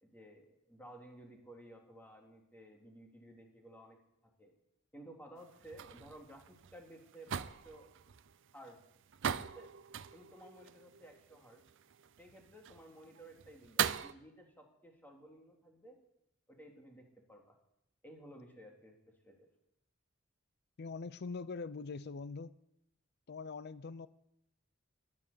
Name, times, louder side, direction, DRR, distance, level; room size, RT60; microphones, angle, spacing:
voice 1, 0.0-4.0 4.4-4.5 4.9-7.9 8.5-8.8 9.3-9.7 10.1-11.6 12.2-16.0 16.5-17.6 18.0-19.0 19.2-19.5, right 1 dB, 10° left, 1 dB, 2.5 m, -55 dB
sound 1, 5.4-14.1, right 9 dB, 65° right, 0.5 m, -41 dB
voice 2, 20.8-22.5 23.3-24.1, left 4 dB, 55° left, 16 dB, 0.5 m, -43 dB
13.0 x 11.0 x 6.9 m, 0.79 s
head